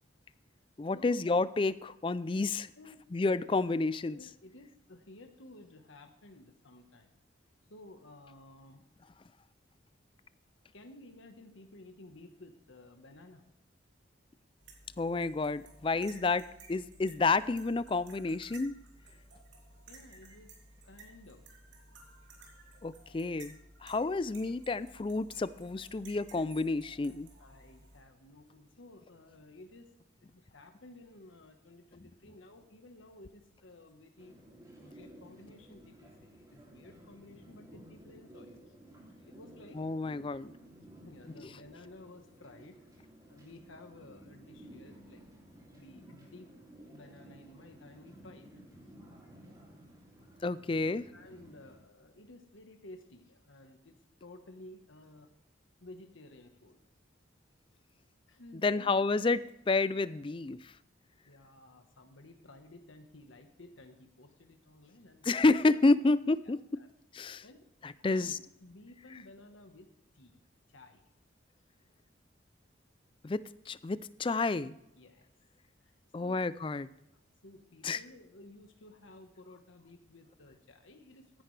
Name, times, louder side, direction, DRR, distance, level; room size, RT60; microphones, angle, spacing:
voice 1, 0.8-2.7 3.1-4.2 15.0-18.8 22.8-27.3 39.8-40.5 50.4-51.1 58.6-59.4 59.7-60.7 65.2-66.8 67.1-67.4 67.8-68.4 73.2-74.7 76.1-76.9 77.8-78.0, left 3 dB, 25° left, 17 dB, 0.3 m, -30 dB
voice 2, 2.8-3.1 4.1-7.1 7.7-8.8 10.7-13.4 19.9-20.6 20.8-21.4 25.8-25.9 27.4-29.9 30.2-34.3 34.8-38.7 39.2-39.8 41.0-42.8 43.3-45.2 45.7-46.5 46.9-48.5 51.1-55.3 55.8-56.8 58.3-59.0 61.3-65.5 66.4-66.9 67.4-67.7 68.0-68.3 68.6-69.9 70.1-70.4 70.7-71.0 75.0-75.3 75.8-76.4 77.1-81.4, left 2 dB, 80° left, 5 dB, 1.3 m, -54 dB
sound 1, 14.6-28.0, right 2 dB, 70° right, 2.9 m, -56 dB
sound 2, 34.2-51.8, right 1 dB, 20° right, 2.9 m, -55 dB
15.0 x 10.5 x 3.3 m, 0.85 s
head